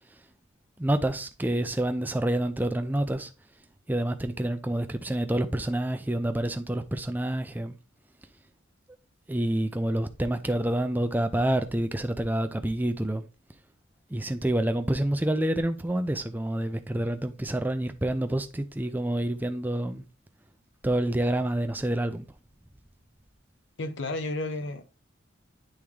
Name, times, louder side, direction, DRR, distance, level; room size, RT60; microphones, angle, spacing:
voice 1, 0.8-3.3 3.9-7.7 9.3-13.2 14.1-20.0 20.8-22.3, right 1 dB, 10° right, 0.4 m, -28 dB
voice 2, 23.8-24.8, left 2 dB, 55° left, 0.7 m, -32 dB
8.7 x 3.6 x 3.2 m
head